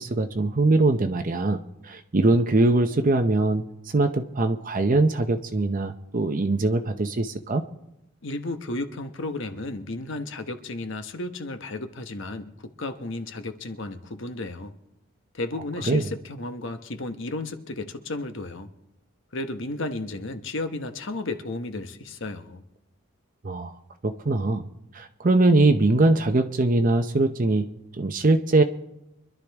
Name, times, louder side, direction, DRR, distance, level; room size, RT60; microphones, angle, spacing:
voice 1, 0.0-3.6 3.9-7.6 15.9-16.0 23.4-23.7 24.0-24.6 24.9-27.7 28.0-28.6, right 2 dB, 40° right, 6 dB, 0.7 m, -22 dB
voice 2, 8.2-14.7 15.3-18.7 19.3-22.6, left 2 dB, 60° left, 8 dB, 1.1 m, -33 dB
25.0 x 11.5 x 3.5 m, 0.88 s
head